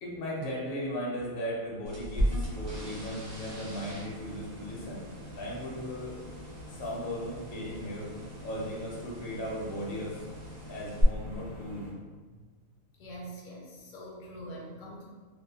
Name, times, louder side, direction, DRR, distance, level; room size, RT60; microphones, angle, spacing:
voice 1, 0.0-5.0 5.4-6.2 6.7-8.1 8.4-10.2 10.7-11.8, equal, 55° left, -4 dB, 0.7 m, -37 dB
sound 1, 1.9-11.0, equal, 45° right, 0.8 m, -39 dB
sound 2, 2.1-11.9, equal, 70° right, 1.0 m, -46 dB
voice 2, 13.0-15.0, equal, 80° left, -3 dB, 1.0 m, -44 dB
2.6 x 2.0 x 2.7 m, 1.4 s
omnidirectional pair, 1.5 m